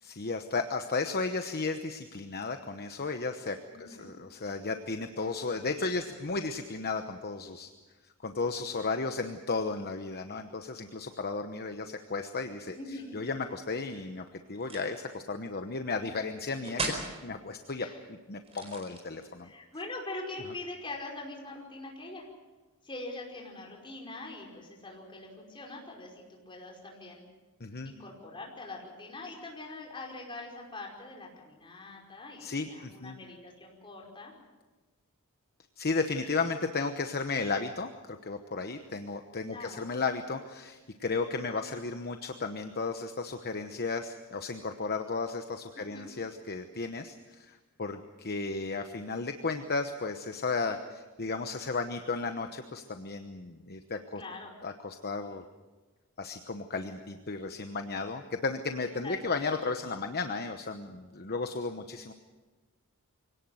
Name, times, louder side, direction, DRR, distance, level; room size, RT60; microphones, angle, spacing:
voice 1, 0.0-7.7 8.2-12.8 13.1-17.0 17.2-19.5 27.6-27.9 32.4-33.1 35.8-54.2 54.6-55.4 56.2-62.1, left 4 dB, 45° left, 6 dB, 1.0 m, -34 dB
voice 2, 3.7-4.1 12.8-13.2 17.8-18.0 19.4-22.3 22.8-27.2 27.8-34.3 39.5-39.9 45.8-46.1 54.2-54.5 59.0-59.5, left 2 dB, 25° left, -1 dB, 5.2 m, -43 dB
sound 1, 14.6-15.0 16.6-17.1 18.4-19.3, right 3 dB, 25° right, 4.5 m, -36 dB
24.5 x 18.0 x 7.9 m, 1.2 s
head